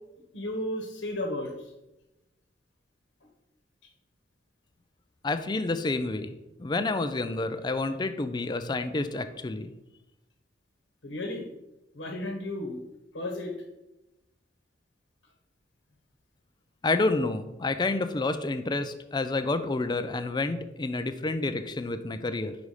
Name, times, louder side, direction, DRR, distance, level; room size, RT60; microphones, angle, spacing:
voice 1, 0.3-1.7 11.0-11.5 11.9-12.8 13.1-13.5, left 1 dB, 75° left, 2 dB, 1.1 m, -33 dB
voice 2, 5.2-6.3 6.6-9.7 16.8-22.6, left 2 dB, 25° left, 10 dB, 0.4 m, -29 dB
5.4 x 5.0 x 4.8 m, 0.94 s
head